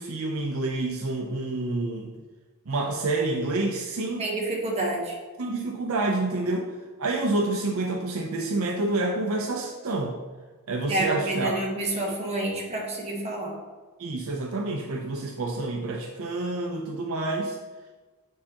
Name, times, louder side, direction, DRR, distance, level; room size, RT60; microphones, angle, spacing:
voice 1, 0.0-2.1 2.7-4.3 5.4-6.7 7.0-10.2 10.7-11.6 14.0-17.6, right 2 dB, 70° right, 1 dB, 0.6 m, -28 dB
voice 2, 4.2-5.1 10.9-13.5, right 2 dB, 30° right, -3 dB, 1.3 m, -28 dB
7.3 x 4.6 x 2.9 m, 1.3 s
head